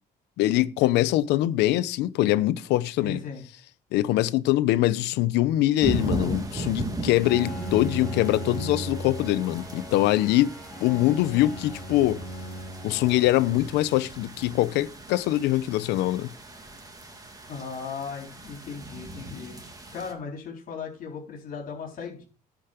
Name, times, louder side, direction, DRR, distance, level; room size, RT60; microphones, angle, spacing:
voice 1, 0.4-3.2 3.9-10.5 10.8-12.2 12.8-16.3, left 15 dB, 85° left, 0.7 m, -23 dB
voice 2, 3.0-3.4 17.5-19.6 19.9-22.2, left 5 dB, 60° left, 4.0 m, -37 dB
sound 1, 5.8-20.1, right 1 dB, 20° right, 2.1 m, -37 dB
Bowed string instrument, 7.2-14.3, right 1 dB, 5° left, 4.1 m, -38 dB
10.5 x 5.2 x 6.7 m
cardioid pair, 110°, 17 cm